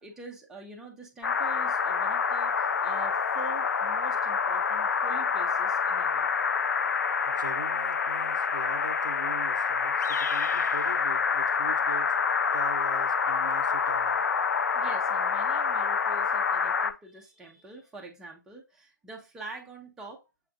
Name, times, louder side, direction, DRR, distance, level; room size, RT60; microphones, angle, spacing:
voice 1, 0.0-6.3 14.7-20.2, right 3 dB, 5° right, 0.6 m, -45 dB
sound 1, 1.2-16.9, left 6 dB, 60° left, 0.4 m, -27 dB
voice 2, 7.3-12.1 12.5-14.2, right 4 dB, 80° right, 0.6 m, -41 dB
6.9 x 2.4 x 2.4 m
figure-of-eight pair, 140°, 10 cm